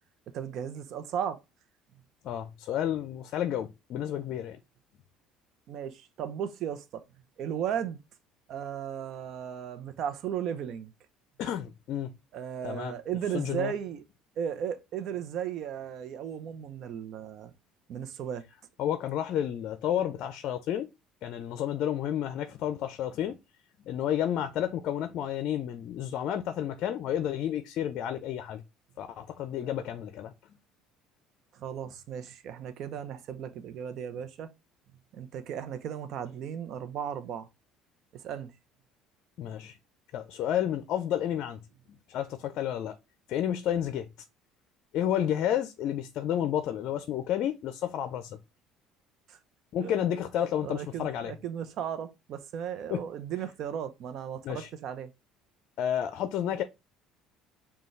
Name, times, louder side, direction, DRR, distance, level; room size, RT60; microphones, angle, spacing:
voice 1, 0.3-1.4 5.7-7.0 7.4-8.0 8.5-10.9 12.3-14.0 14.4-17.5 17.9-18.4 31.5-34.5 35.1-37.5 38.2-38.5 49.3-49.4 49.8-49.9 50.6-55.1, right 9 dB, 60° right, 0.7 m, -35 dB
voice 2, 2.2-4.6 11.4-12.1 12.6-12.9 13.3-13.7 18.8-20.9 21.2-23.4 23.9-28.6 29.0-30.3 39.4-39.8 40.1-41.6 42.1-43.0 43.3-44.1 44.9-48.4 49.7-51.3 52.9-53.0 54.4-54.7 55.8-56.6, left 10 dB, 60° left, 0.4 m, -31 dB
5.3 x 2.3 x 3.2 m
supercardioid pair, 85°, 0 cm